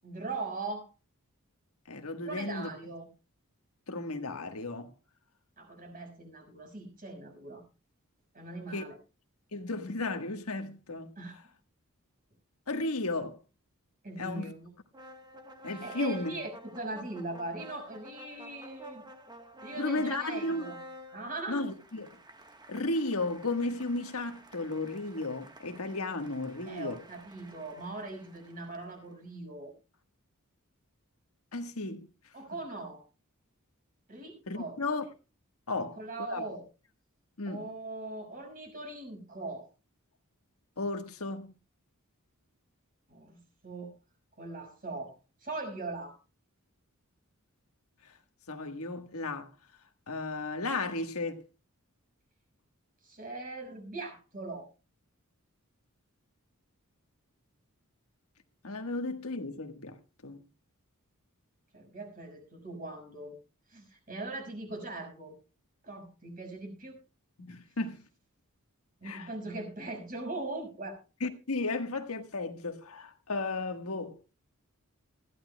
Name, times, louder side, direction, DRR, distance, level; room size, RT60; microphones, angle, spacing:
voice 1, 0.0-0.9 2.2-3.1 5.6-7.6 8.3-9.0 11.2-11.4 14.0-14.7 15.8-19.0 19.6-20.8 21.1-21.6 26.7-29.7 32.3-33.1 34.1-34.8 35.8-36.7 37.4-39.7 43.1-43.9 44.4-46.2 53.0-54.7 61.7-63.3 63.7-65.4 65.8-67.0 69.0-71.0, right 2 dB, 40° right, 6.0 m, -40 dB
voice 2, 1.9-2.7 3.9-4.9 8.7-8.8 9.5-11.1 12.7-13.4 14.2-14.4 15.6-16.3 19.8-20.7 21.5-22.2 22.7-27.0 31.5-32.0 34.5-35.0 35.7-36.0 36.3-36.4 37.4-37.6 40.8-41.5 48.5-49.5 50.1-51.4 58.6-60.4 67.4-68.0 69.0-69.3 71.2-74.2, left 2 dB, 75° left, 1.5 m, -34 dB
sound 1, 14.9-29.1, right 1 dB, 20° right, 1.3 m, -51 dB
20.5 x 14.5 x 2.3 m
head